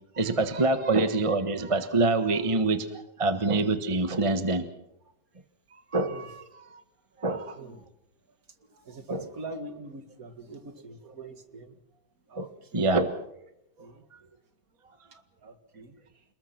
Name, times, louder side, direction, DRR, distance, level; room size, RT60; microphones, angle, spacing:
voice 1, 0.2-4.6 5.9-6.8 7.2-7.6 9.1-9.2 12.4-12.5 12.7-13.1, right 3 dB, 20° right, 9 dB, 1.2 m, -26 dB
voice 2, 7.2-7.9 8.6-11.8 12.3-13.1 13.8-14.1 14.8-15.0 15.4-16.2, right 2 dB, 50° right, 8 dB, 2.5 m, -44 dB
29.0 x 20.5 x 6.0 m, 0.81 s
omnidirectional pair, 2.0 m